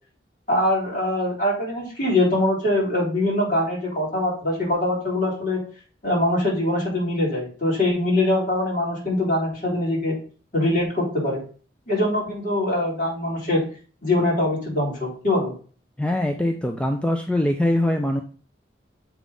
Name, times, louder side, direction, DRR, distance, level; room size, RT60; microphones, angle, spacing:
voice 1, 0.5-5.6 6.0-10.2 10.5-11.4 11.9-13.6 14.0-15.5, left 1 dB, 45° left, -5 dB, 3.9 m, -23 dB
voice 2, 16.0-18.2, left 1 dB, 5° left, 4 dB, 0.4 m, -22 dB
7.3 x 3.5 x 5.4 m, 0.40 s
head